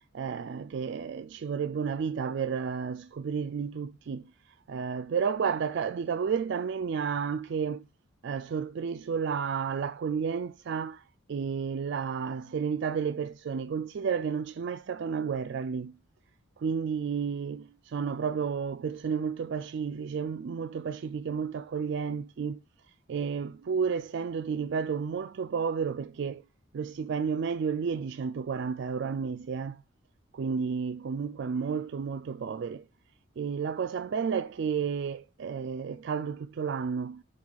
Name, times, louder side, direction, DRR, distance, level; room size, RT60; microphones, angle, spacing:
voice 1, 0.1-7.8 8.2-11.0 11.3-15.9 16.6-22.6 23.1-26.4 26.7-29.8 30.3-32.8 33.4-37.2, right 6 dB, 55° right, 0.3 m, -32 dB
10.5 x 4.2 x 2.3 m
head